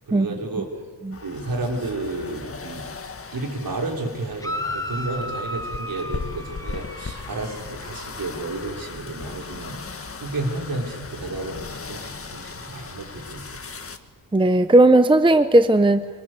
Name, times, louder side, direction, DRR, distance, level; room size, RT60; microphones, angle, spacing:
voice 1, 0.1-0.8 1.2-2.8 3.3-13.6, right 2 dB, 55° right, 1 dB, 5.7 m, -31 dB
sound 1, 1.1-14.0, left 4 dB, 30° left, 1.9 m, -38 dB
sound 2, 4.4-7.7, left 1 dB, 10° left, 2.3 m, -33 dB
voice 2, 14.3-16.1, right 2 dB, 10° right, 10 dB, 0.8 m, -16 dB
26.5 x 26.0 x 8.3 m, 1.4 s
wide cardioid pair, 115°, 42 cm